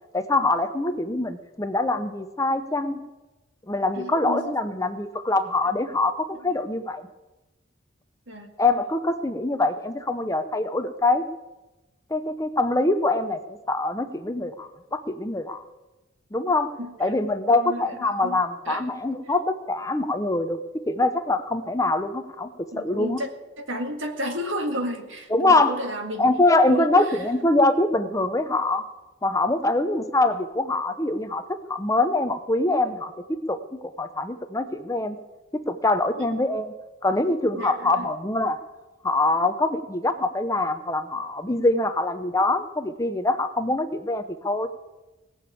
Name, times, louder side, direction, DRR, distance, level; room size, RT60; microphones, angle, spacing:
voice 1, 0.1-3.0 3.7-7.0 8.6-11.2 12.1-15.6 16.3-16.7 17.0-20.6 20.9-22.5 22.8-23.2 25.3-25.8 26.2-28.8 29.2-33.6 34.0-35.2 35.7-36.7 37.0-38.6 39.0-44.7, left 2 dB, 15° left, 9 dB, 0.7 m, -24 dB
voice 2, 3.9-4.6 6.3-6.6 8.3-8.5 16.8-16.9 17.5-18.4 18.7-18.8 19.2-19.3 22.7-23.3 23.6-26.3 26.7-27.2 36.1-36.3 37.5-38.1, equal, 70° right, 5 dB, 1.9 m, -32 dB
19.0 x 7.0 x 8.4 m, 1.1 s
head